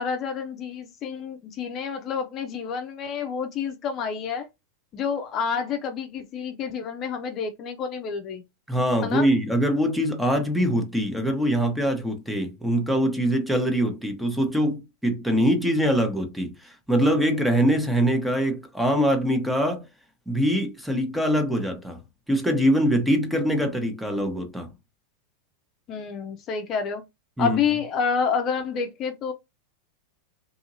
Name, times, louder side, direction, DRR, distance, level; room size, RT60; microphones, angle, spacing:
voice 1, 0.0-4.5 4.9-8.4 9.0-9.3 25.9-27.0 27.4-29.3, left 6 dB, 40° left, 0.6 m, -28 dB
voice 2, 8.7-19.8 20.3-22.0 22.3-24.7 27.4-27.6, equal, 5° right, 0.9 m, -23 dB
2.7 x 2.7 x 2.6 m
hypercardioid pair, 100°, 0 cm